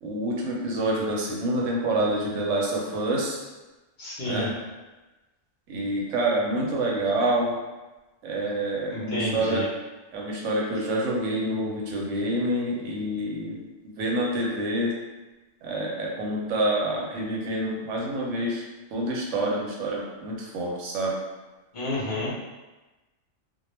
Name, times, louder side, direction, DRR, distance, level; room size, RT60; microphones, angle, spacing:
voice 1, 0.0-3.4 4.2-4.5 5.7-7.5 8.2-9.6 10.1-13.6 13.8-14.9 15.6-18.6 18.9-21.2, right 1 dB, 75° right, -3 dB, 0.9 m, -27 dB
voice 2, 4.0-4.5 8.9-9.6 21.7-22.3, left 1 dB, 45° left, -7 dB, 0.7 m, -30 dB
2.2 x 2.1 x 3.1 m, 1.1 s
omnidirectional pair, 1.4 m